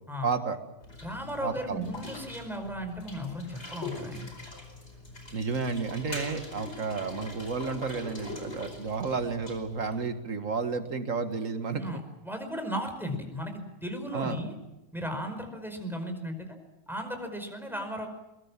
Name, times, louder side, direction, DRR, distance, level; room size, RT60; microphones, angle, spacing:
voice 1, 0.2-0.6 1.4-1.9 5.3-11.9 14.1-14.4, right 4 dB, 70° right, 8 dB, 2.2 m, -31 dB
sound 1, 0.8-10.1, left 2 dB, 55° left, 5.2 m, -43 dB
voice 2, 1.0-4.3 11.7-14.5 14.9-16.5 16.9-18.1, equal, ahead, 5 dB, 5.0 m, -36 dB
23.0 x 22.0 x 7.5 m, 0.94 s
omnidirectional pair, 1.4 m